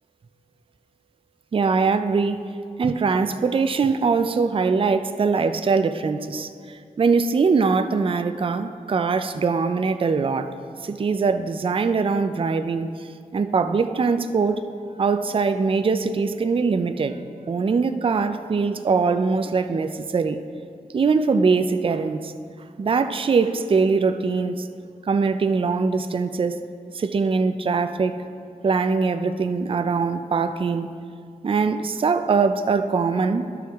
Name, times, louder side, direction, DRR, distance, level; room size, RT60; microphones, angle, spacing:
voice 1, 1.5-2.4 2.8-10.5 10.8-12.9 13.3-14.6 15.0-17.2 17.5-20.4 20.9-22.3 22.8-24.7 25.1-26.6 26.9-28.1 28.6-30.9 31.4-33.5, right 4 dB, 40° right, 9 dB, 0.4 m, -22 dB
12.5 x 4.6 x 3.5 m, 2.2 s
cardioid pair, 50°, 14 cm